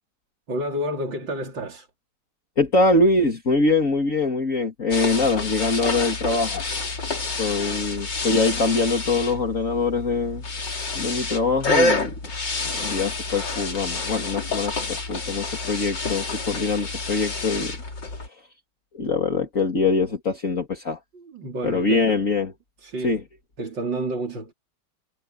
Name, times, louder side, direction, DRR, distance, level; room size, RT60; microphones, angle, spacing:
voice 1, 0.5-1.9 21.1-22.3 22.8-23.2 23.6-24.5, right 1 dB, 70° right, 4.4 m, -30 dB
voice 2, 2.6-7.0 7.4-10.4 10.9-12.1 12.7-17.8 18.3-18.4 18.9-21.0 21.6-22.5 23.0-23.2, left 3 dB, 45° left, 2.8 m, -23 dB
sound 1, 4.9-18.3, left 3 dB, 65° left, 4.1 m, -28 dB
omnidirectional pair, 2.1 m